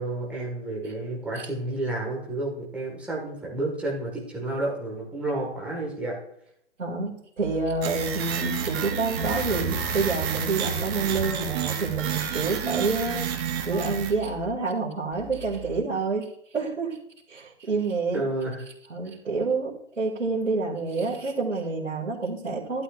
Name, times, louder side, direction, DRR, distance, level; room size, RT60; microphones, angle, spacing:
voice 1, 0.0-6.2 18.1-18.6, right 2 dB, 5° right, -3 dB, 1.8 m, -30 dB
voice 2, 6.8-17.0 17.3-18.2 18.9-22.8, right 4 dB, 80° right, -5 dB, 2.4 m, -28 dB
sound 1, 7.4-14.5 15.1-15.8, right 2 dB, 50° right, 1.8 m, -39 dB
sound 2, 7.8-14.1, right 8 dB, 20° right, 0.8 m, -30 dB
sound 3, 9.2-11.3, left 9 dB, 50° left, 1.5 m, -38 dB
11.5 x 11.5 x 2.5 m, 0.72 s
figure-of-eight pair, 140°, 37 cm